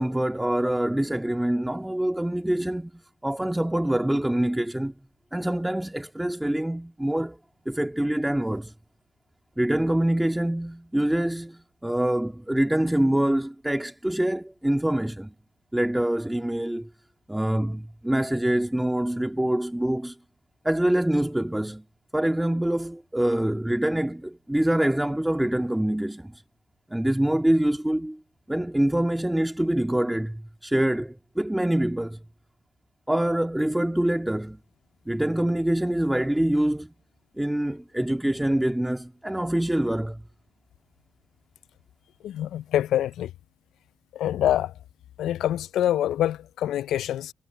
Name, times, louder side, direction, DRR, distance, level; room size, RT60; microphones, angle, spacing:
voice 1, 0.0-2.9 3.2-4.9 5.3-7.4 7.7-8.7 9.6-15.3 15.7-16.9 17.3-20.2 20.6-21.8 22.1-26.4 26.9-28.2 28.5-32.2 33.1-34.6 35.1-36.9 37.4-40.2, right 1 dB, 10° right, 1.9 m, -25 dB
voice 2, 42.2-43.3 44.1-44.7 45.2-47.3, left 12 dB, 75° left, 0.4 m, -25 dB
supercardioid pair, 50°, 0 cm